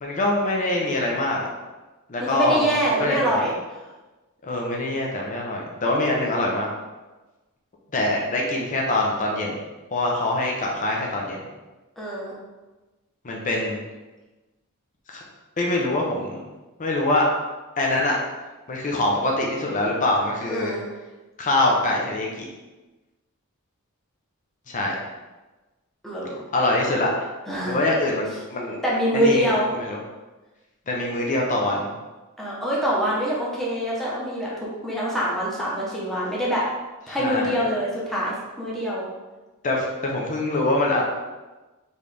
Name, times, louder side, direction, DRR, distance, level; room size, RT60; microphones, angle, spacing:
voice 1, 0.0-1.5 2.1-3.4 4.4-6.7 7.9-9.6 9.9-11.4 13.2-13.8 15.1-15.2 15.6-16.4 16.8-17.2 17.8-18.2 18.7-20.7 21.4-22.5 24.7-25.0 26.5-27.3 27.6-28.8 29.1-30.0 30.9-31.9 37.2-37.5 39.6-41.0, left 2 dB, 35° left, -1 dB, 0.6 m, -24 dB
voice 2, 2.2-3.5 12.0-12.4 20.5-20.9 26.0-26.4 27.5-27.8 28.8-29.7 32.4-36.7 37.1-39.1, equal, ahead, -6 dB, 1.0 m, -24 dB
4.3 x 3.2 x 3.4 m, 1.2 s
head